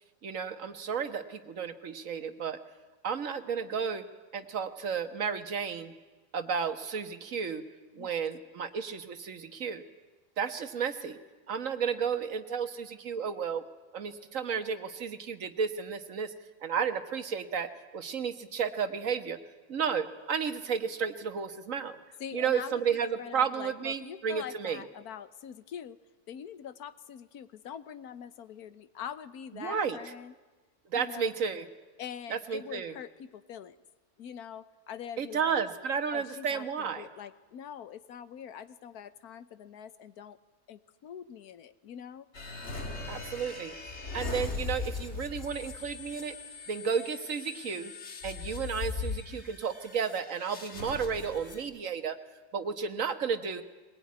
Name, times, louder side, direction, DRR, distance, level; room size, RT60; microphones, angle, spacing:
voice 1, 0.2-2.6 3.0-4.0 4.3-5.9 6.3-7.6 8.0-9.8 10.4-11.2 11.5-13.6 13.9-16.3 16.6-19.4 19.7-22.0 22.3-24.8 29.5-30.0 30.9-31.6 32.3-32.9 35.2-37.1 43.1-43.7 44.1-46.4 46.7-47.9 48.2-52.2 52.5-53.6, right 6 dB, 60° right, 9 dB, 1.7 m, -32 dB
voice 2, 22.2-26.0 26.3-30.3 30.9-31.4 32.0-33.8 34.2-35.6 36.1-40.4 40.7-42.3, left 8 dB, 85° left, 14 dB, 1.4 m, -44 dB
sound 1, 42.3-51.6, left 4 dB, 50° left, 2.4 m, -39 dB
21.0 x 21.0 x 9.5 m, 1.2 s
omnidirectional pair, 1.6 m